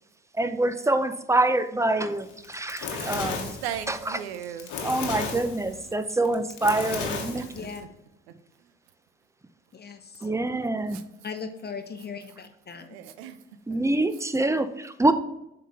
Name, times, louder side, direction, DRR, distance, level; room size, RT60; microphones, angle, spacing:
voice 1, 0.4-3.6 3.9-4.2 4.8-7.5 10.2-11.0 13.7-15.1, right 2 dB, 10° right, 10 dB, 0.6 m, -25 dB
Fire, 2.3-7.8, left 5 dB, 70° left, 1.2 m, -34 dB
voice 2, 3.6-4.8 7.3-7.7 8.6-8.7 10.9-11.0 12.8-13.4 13.7-13.8, right 9 dB, 85° right, 11 dB, 0.5 m, -37 dB
voice 3, 9.7-10.3 11.2-12.9, left 5 dB, 30° left, 8 dB, 0.9 m, -38 dB
7.2 x 3.8 x 4.3 m, 0.85 s
hypercardioid pair, 50°, 31 cm